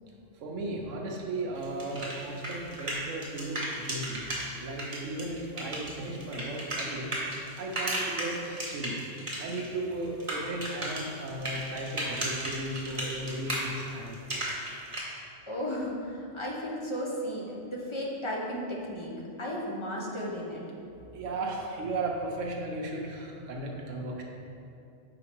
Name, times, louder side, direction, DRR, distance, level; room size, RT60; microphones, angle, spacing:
voice 1, 0.4-4.3 4.6-7.3 7.6-9.0 9.4-14.4 21.1-24.2, right 2 dB, 85° right, 0 dB, 1.1 m, -35 dB
sound 1, 1.6-4.4 4.8-9.7 9.9-15.0, right 1 dB, 25° right, 1.2 m, -34 dB
voice 2, 15.5-20.6, equal, 30° left, -4 dB, 0.8 m, -34 dB
5.0 x 4.9 x 4.4 m, 2.6 s
omnidirectional pair, 1.3 m